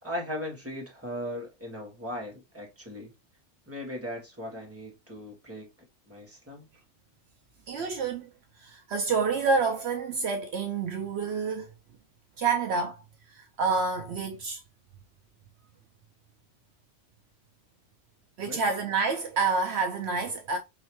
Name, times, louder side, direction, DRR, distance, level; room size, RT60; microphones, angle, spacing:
voice 1, 0.0-3.1 3.7-5.7 6.1-6.7 18.4-18.6, left 1 dB, 10° right, 1.6 m, -38 dB
voice 2, 7.7-8.3 8.6-11.7 12.4-14.6 18.4-20.6, right 4 dB, 70° right, 0.9 m, -28 dB
5.1 x 3.1 x 3.0 m
omnidirectional pair, 1.2 m